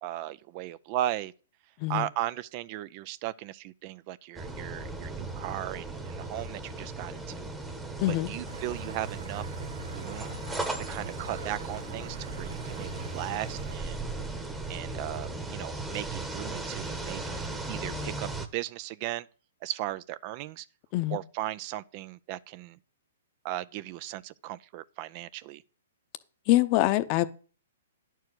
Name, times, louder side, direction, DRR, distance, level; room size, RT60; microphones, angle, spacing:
voice 1, 0.0-1.3 1.9-7.5 8.1-9.4 9.9-10.3 10.9-14.0 14.7-19.3 19.6-20.7 21.1-22.8 23.4-25.6, right 14 dB, 40° right, 0.4 m, -36 dB
sound 1, 4.4-18.5, right 2 dB, 10° right, 1.1 m, -37 dB
sound 2, 8.5-13.8, right 6 dB, 75° right, 0.7 m, -44 dB
voice 2, 26.5-27.3, left 16 dB, 40° left, 0.8 m, -24 dB
10.5 x 4.6 x 7.8 m
hypercardioid pair, 130°, 0 cm